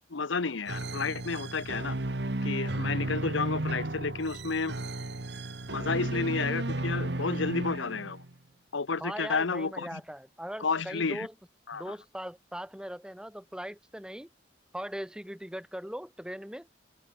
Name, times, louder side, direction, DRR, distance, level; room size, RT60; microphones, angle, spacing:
voice 1, 0.1-2.0 2.4-4.7 5.7-8.2 8.7-10.0 10.6-11.3 11.7-11.9, left 4 dB, 85° left, 1.0 m, -31 dB
sound 1, 0.7-8.3, right 2 dB, 60° right, 1.4 m, -33 dB
voice 2, 9.0-11.3 11.7-14.3 14.7-16.7, equal, 5° right, 1.9 m, -40 dB
head